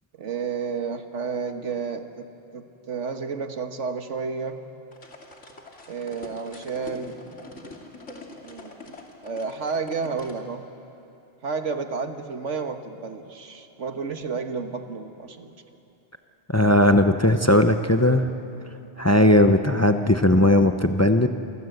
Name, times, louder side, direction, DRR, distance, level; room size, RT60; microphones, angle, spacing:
voice 1, 0.2-2.3 2.5-4.6 5.9-7.2 8.4-9.0 9.2-10.7 11.4-15.5, right 5 dB, 90° right, 6 dB, 1.8 m, -31 dB
sound 1, 4.9-10.4, left 2 dB, 90° left, 3.0 m, -43 dB
voice 2, 16.5-18.3 19.0-21.3, left 1 dB, 15° left, 7 dB, 0.8 m, -18 dB
28.5 x 24.0 x 8.0 m, 2.7 s
omnidirectional pair, 1.2 m